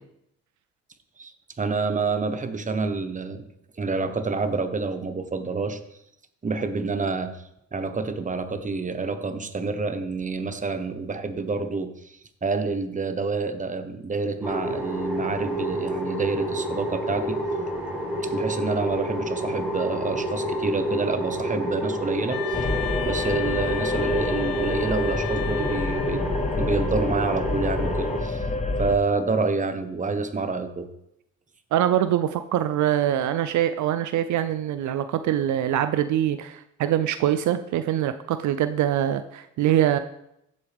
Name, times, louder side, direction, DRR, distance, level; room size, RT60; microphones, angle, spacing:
voice 1, 1.6-3.4 3.8-5.8 6.4-7.4 7.7-17.4 18.3-22.7 23.0-28.4 28.8-30.9, right 4 dB, 25° right, 8 dB, 1.2 m, -28 dB
sound 1, 14.4-28.2, equal, 5° right, 4.2 m, -29 dB
Wind instrument woodwind instrument, 22.3-26.5, left 11 dB, 60° left, 3.9 m, -34 dB
sound 2, 22.5-29.0, left 2 dB, 20° left, 1.1 m, -28 dB
voice 2, 31.7-40.0, right 11 dB, 75° right, 11 dB, 0.6 m, -24 dB
15.0 x 8.1 x 3.6 m, 0.79 s
cardioid pair, 90°, 30 cm